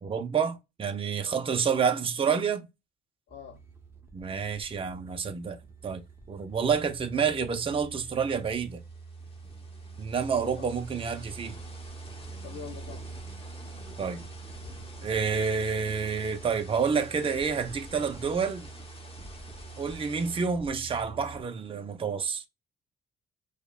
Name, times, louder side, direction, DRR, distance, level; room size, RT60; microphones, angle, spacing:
voice 1, 0.0-2.7 4.1-5.6 5.8-6.0 6.3-8.8 10.0-11.5 14.0-14.2 15.0-18.7 19.8-22.4, right 6 dB, 25° right, 0.6 m, -29 dB
voice 2, 3.3-3.6 10.3-10.7 12.4-13.0, left 7 dB, 60° left, 0.6 m, -44 dB
sound 1, 3.3-21.4, right 4 dB, 10° right, 0.9 m, -45 dB
sound 2, 7.9-20.5, left 2 dB, 30° left, 1.1 m, -50 dB
4.9 x 2.2 x 2.4 m
cardioid pair, 90°, 20 cm